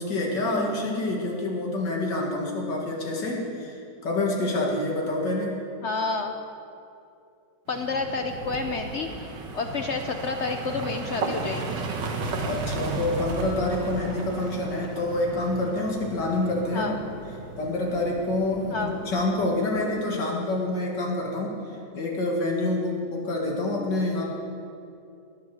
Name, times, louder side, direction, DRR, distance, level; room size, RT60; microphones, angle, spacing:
voice 1, 0.0-5.6 12.4-17.0 17.6-21.6 21.9-24.3, left 2 dB, 80° left, -1 dB, 2.6 m, -27 dB
voice 2, 5.8-6.3 7.7-11.8 16.7-16.9 18.7-18.9, left 3 dB, 60° left, 5 dB, 0.7 m, -30 dB
sound 1, 7.7-19.5, right 3 dB, 85° right, 1.9 m, -35 dB
20.0 x 6.8 x 6.3 m, 2.6 s
omnidirectional pair, 1.9 m